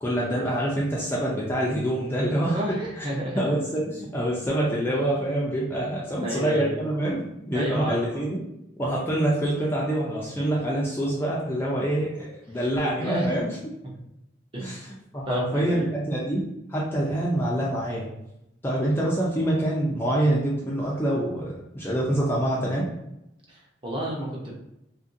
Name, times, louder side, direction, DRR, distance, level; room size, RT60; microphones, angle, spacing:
voice 1, 0.0-3.0 3.4-8.4 8.8-13.5 14.6-14.9 15.1-18.1 18.6-22.9, right 1 dB, 10° left, -5 dB, 0.4 m, -26 dB
voice 2, 2.5-3.4 6.2-6.8 7.5-8.2 13.0-13.4 14.5-14.7 15.3-15.9 23.5-24.5, equal, 25° right, -4 dB, 0.7 m, -31 dB
2.8 x 2.5 x 2.6 m, 0.85 s
head